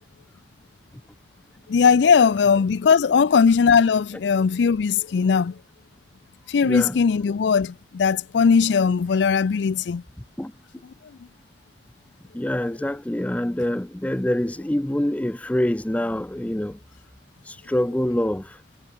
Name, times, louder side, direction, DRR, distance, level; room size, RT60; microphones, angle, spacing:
voice 1, 1.7-5.6 6.5-10.0, left 6 dB, 80° left, 0.4 m, -19 dB
voice 2, 6.6-7.0 10.4-10.8 12.3-16.8 17.5-18.6, left 1 dB, 10° left, 0.4 m, -25 dB
head